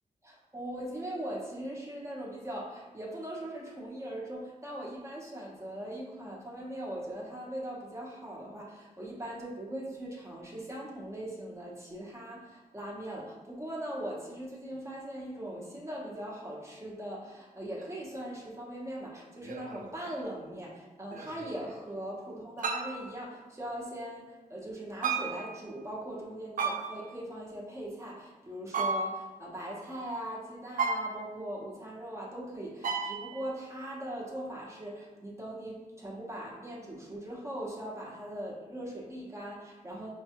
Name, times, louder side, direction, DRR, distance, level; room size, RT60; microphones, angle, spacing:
voice 1, 0.2-40.1, right 1 dB, 20° right, -4 dB, 0.8 m, -40 dB
sound 1, 17.8-17.9 19.4-20.1 21.1-21.8 22.6-23.1 25.0-25.5 26.6-27.2 28.7-29.4 30.8-31.5 32.8-33.4, right 4 dB, 70° right, 0.4 m, -33 dB
5.2 x 2.2 x 2.9 m, 1.2 s
wide cardioid pair, 120°, 15 cm